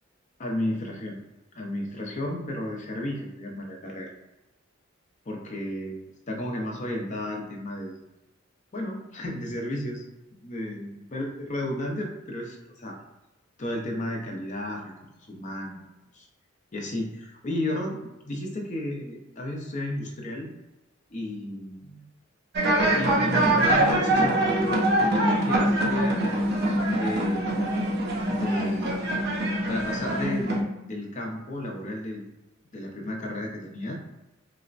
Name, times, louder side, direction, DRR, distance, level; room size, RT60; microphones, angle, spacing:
voice 1, 0.4-1.2 1.5-4.1 5.3-6.0 6.3-7.9 8.7-10.0 10.4-13.0 13.6-14.9 15.3-15.9 16.1-16.3 16.7-20.5 21.1-21.9 22.8-24.4 25.1-27.4 28.4-29.0 29.7-32.2 32.7-34.0, left 1 dB, 35° left, 0 dB, 0.5 m, -33 dB
sound 1, 22.6-30.6, right 1 dB, 55° right, 0.6 m, -24 dB
3.9 x 2.1 x 2.4 m, 0.98 s
head